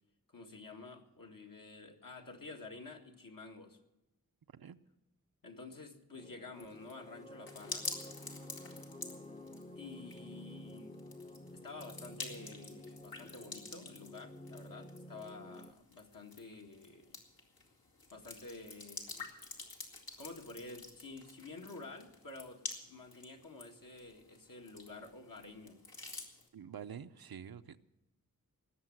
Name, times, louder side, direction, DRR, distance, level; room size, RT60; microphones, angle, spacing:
voice 1, 0.3-3.8 5.4-7.9 9.8-10.9 11.5-17.2 18.1-19.3 20.2-25.8, left 3 dB, 65° left, 2 dB, 2.0 m, -50 dB
sound 1, 6.1-15.7, left 1 dB, 15° left, 0.7 m, -51 dB
sound 2, 6.6-26.5, left 3 dB, 85° left, 2.4 m, -49 dB
voice 2, 26.5-27.8, right 8 dB, 90° right, 11 dB, 0.7 m, -47 dB
19.5 x 7.4 x 7.8 m, 0.99 s
wide cardioid pair, 80°, 35 cm